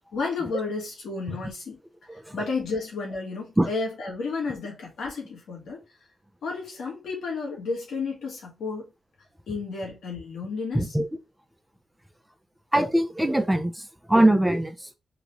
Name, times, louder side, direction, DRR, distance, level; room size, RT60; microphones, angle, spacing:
voice 1, 0.1-1.8 2.3-5.8 6.4-8.8 9.5-11.0, left 4 dB, 80° left, 1.9 m, -32 dB
voice 2, 10.7-11.1 12.7-14.8, right 1 dB, 10° right, 0.8 m, -22 dB
3.8 x 2.9 x 3.2 m
cardioid pair, 55°, 0 cm